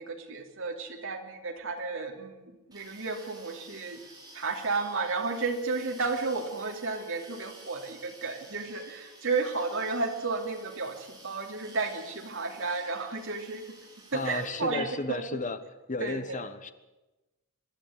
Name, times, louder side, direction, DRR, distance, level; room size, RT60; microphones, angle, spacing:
voice 1, 0.0-4.0 4.3-13.8 14.1-15.2 16.0-16.4, right 3 dB, 65° right, 3 dB, 3.0 m, -33 dB
sound 1, 2.7-14.7, right 2 dB, 20° right, 4.4 m, -52 dB
voice 2, 14.1-15.6 15.9-16.7, left 3 dB, 35° left, 11 dB, 1.2 m, -33 dB
24.0 x 11.5 x 9.5 m, 1.1 s
head